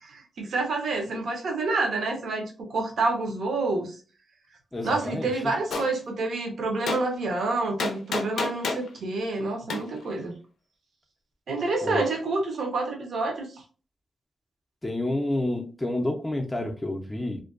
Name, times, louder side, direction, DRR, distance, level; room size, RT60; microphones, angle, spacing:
voice 1, 0.0-4.0 4.8-10.4 11.5-13.5, right 3 dB, 75° right, 3 dB, 0.6 m, -28 dB
voice 2, 4.7-5.3 11.8-12.0 14.8-17.4, left 1 dB, 15° left, 3 dB, 0.4 m, -29 dB
Gunshot gunfire, 5.7-5.9 6.9-7.0 7.8-8.9 9.7-9.8, left 4 dB, 90° left, 0.4 m, -28 dB
2.5 x 2.2 x 2.4 m, 0.36 s
cardioid pair, 95°, 0 cm